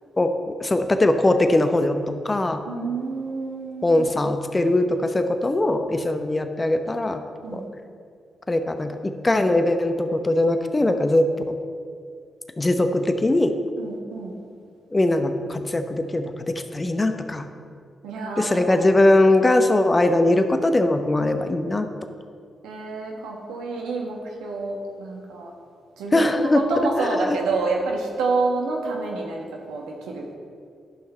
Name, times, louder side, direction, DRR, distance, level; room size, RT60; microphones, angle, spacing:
voice 1, 0.6-2.6 3.8-7.2 7.5-7.6 8.5-11.6 12.6-13.5 14.9-17.5 18.4-21.9 26.1-26.6 27.0-27.4, left 1 dB, 30° left, 7 dB, 0.9 m, -21 dB
voice 2, 2.7-4.0 7.4-7.7 13.8-14.4 18.0-18.8 20.0-20.1 22.6-25.5 26.0-30.4, right 3 dB, 85° right, 0 dB, 1.2 m, -28 dB
11.5 x 5.8 x 4.4 m, 2.3 s
supercardioid pair, 45°, 0 cm